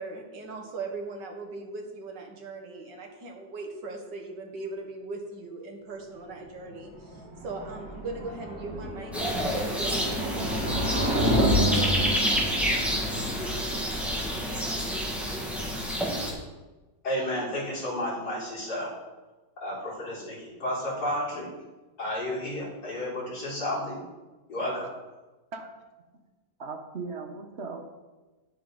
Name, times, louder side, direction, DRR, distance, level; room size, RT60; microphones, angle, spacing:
voice 1, 0.0-10.9, right 3 dB, 85° right, 2 dB, 2.0 m, -39 dB
sound 1, 6.7-15.7, equal, 60° right, 2.8 m, -30 dB
sound 2, 9.1-16.3, equal, ahead, 1.7 m, -29 dB
voice 2, 17.0-18.9 19.6-21.5 22.0-24.0 24.5-24.9, left 1 dB, 80° left, -8 dB, 4.5 m, -32 dB
voice 3, 26.6-27.8, right 4 dB, 45° right, 4 dB, 1.2 m, -37 dB
9.9 x 8.4 x 3.9 m, 1.2 s
omnidirectional pair, 1.8 m